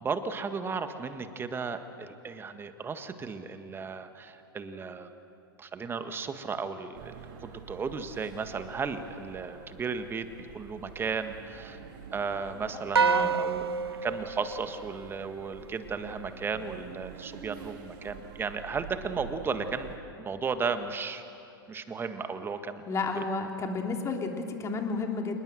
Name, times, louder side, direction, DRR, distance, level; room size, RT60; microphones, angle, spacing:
voice 1, 0.0-5.1 5.6-10.3 10.5-11.8 12.1-13.6 14.0-21.2 21.7-22.8 23.2-23.3, right 5 dB, 15° right, 9 dB, 1.7 m, -35 dB
sound 1, 6.9-20.0, right 7 dB, 55° right, 3.1 m, -47 dB
voice 2, 13.0-13.3 22.8-25.4, left 4 dB, 25° left, 3 dB, 3.2 m, -31 dB
sound 2, 13.0-15.5, right 6 dB, 90° right, 0.6 m, -28 dB
27.5 x 20.0 x 7.8 m, 2.6 s
hypercardioid pair, 110°, 13 cm